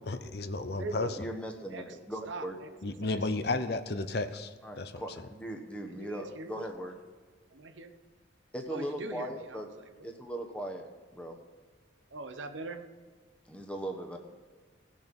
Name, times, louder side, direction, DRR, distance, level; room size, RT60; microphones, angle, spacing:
voice 1, 0.1-1.2 2.8-5.0, left 3 dB, 55° left, 10 dB, 0.7 m, -33 dB
voice 2, 0.6-1.2 1.7-2.0 2.3-3.7 4.1-4.2 5.9-6.7 7.5-7.9 8.7-10.1 12.1-12.9, right 3 dB, 85° right, 8 dB, 1.0 m, -42 dB
voice 3, 1.2-2.5 4.6-7.0 8.5-9.7 10.0-11.4 13.5-14.2, right 1 dB, 5° left, 3 dB, 1.1 m, -39 dB
17.5 x 6.5 x 5.3 m, 1.5 s
head